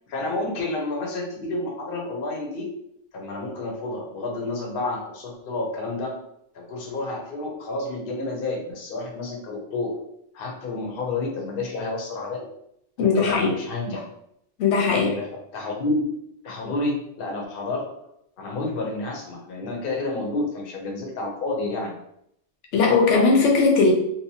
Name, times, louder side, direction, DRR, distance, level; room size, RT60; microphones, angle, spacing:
voice 1, 0.1-2.7 3.1-6.2 6.5-10.0 10.3-12.5 13.0-14.0 14.9-16.0 16.4-18.1 18.4-21.9, left 2 dB, 55° left, 0 dB, 0.8 m, -30 dB
voice 2, 13.0-13.6 14.6-15.1 22.7-23.9, left 4 dB, 80° left, 0 dB, 1.0 m, -18 dB
2.7 x 2.1 x 2.7 m, 0.74 s
omnidirectional pair, 1.2 m